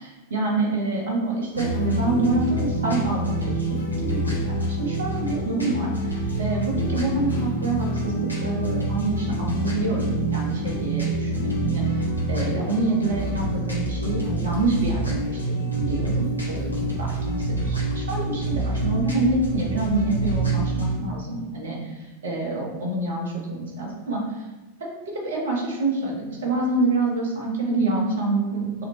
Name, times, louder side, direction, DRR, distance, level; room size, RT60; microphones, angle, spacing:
voice 1, 0.0-24.5 24.8-28.9, right 2 dB, 60° right, -1 dB, 1.2 m, -27 dB
sound 1, 1.5-21.0, right 2 dB, 90° left, 1.0 m, -26 dB
5.6 x 3.1 x 3.0 m, 1.1 s
figure-of-eight pair, 90°, 0 cm